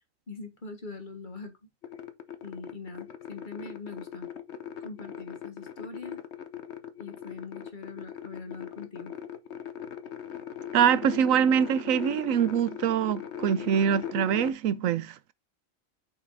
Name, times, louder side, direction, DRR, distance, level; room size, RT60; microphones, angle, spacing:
voice 1, 0.3-1.5 2.4-4.3 4.8-6.2 7.0-9.1, left 3 dB, 40° left, 1.6 m, -42 dB
sound 1, 1.8-14.5, left 9 dB, 60° left, 1.2 m, -40 dB
voice 2, 10.7-15.1, right 8 dB, 85° right, 1.0 m, -24 dB
6.9 x 5.5 x 4.0 m
omnidirectional pair, 1.4 m